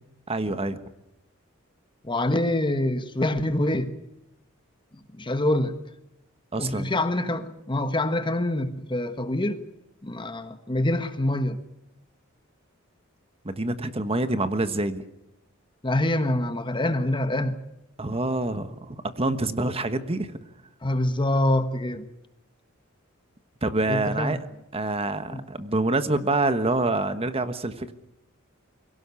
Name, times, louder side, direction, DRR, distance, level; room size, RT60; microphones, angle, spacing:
voice 1, 0.3-0.8 6.5-6.9 13.4-15.0 18.0-20.3 23.6-24.5 24.7-27.9, right 2 dB, 30° right, 1.3 m, -26 dB
voice 2, 2.0-3.9 5.1-5.7 6.6-9.6 10.0-11.6 15.8-17.5 20.8-22.0 23.9-24.4 25.3-25.4, left 1 dB, 25° left, 1.3 m, -25 dB
23.5 x 17.0 x 8.4 m
head